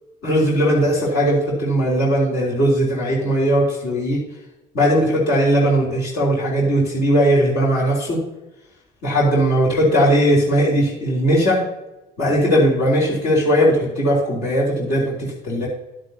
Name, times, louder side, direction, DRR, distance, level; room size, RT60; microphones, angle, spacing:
voice 1, 0.2-4.2 4.7-8.2 9.0-11.6 12.2-15.7, equal, 80° left, -6 dB, 3.4 m, -18 dB
11.0 x 9.7 x 2.8 m, 0.98 s
cardioid pair, 110°, 17 cm